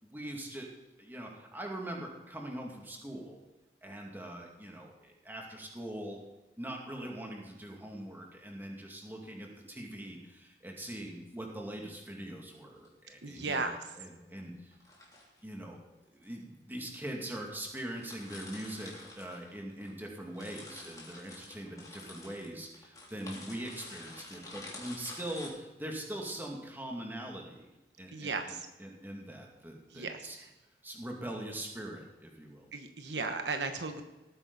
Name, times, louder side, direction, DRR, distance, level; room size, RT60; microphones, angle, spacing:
voice 1, 0.0-0.7 1.0-3.4 3.8-6.2 6.6-14.8 15.4-15.8 16.1-27.7 28.0-30.4 30.8-32.7, right 1 dB, 10° right, 0 dB, 2.4 m, -42 dB
sound 1, 12.6-12.9 14.7-15.4 16.2-16.3 17.1-17.2 17.4-17.5 17.7-19.9 20.2-25.5, left 2 dB, 20° left, 3.2 m, -49 dB
voice 2, 13.2-13.7 28.1-28.7 29.9-30.5 32.7-34.0, right 4 dB, 75° right, 6 dB, 1.1 m, -35 dB
18.0 x 9.3 x 4.1 m, 1.1 s
head